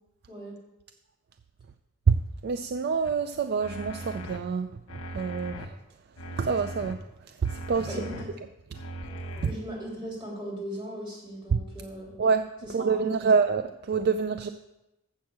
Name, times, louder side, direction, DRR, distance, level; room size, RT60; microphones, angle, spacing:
voice 1, 2.1-4.8 5.1-5.7 6.4-7.0 7.4-7.9 11.5-11.6 12.2-14.5, right 5 dB, 50° right, 9 dB, 0.4 m, -26 dB
sound 1, 3.0-3.1 3.6-4.4 4.9-5.7 6.2-6.9 7.4-8.2 8.7-9.5, right 1 dB, 80° left, 1.1 m, -39 dB
voice 2, 7.8-8.3 9.4-12.1 12.6-13.3, equal, 25° right, -4 dB, 3.5 m, -38 dB
7.4 x 6.2 x 7.2 m, 0.93 s
head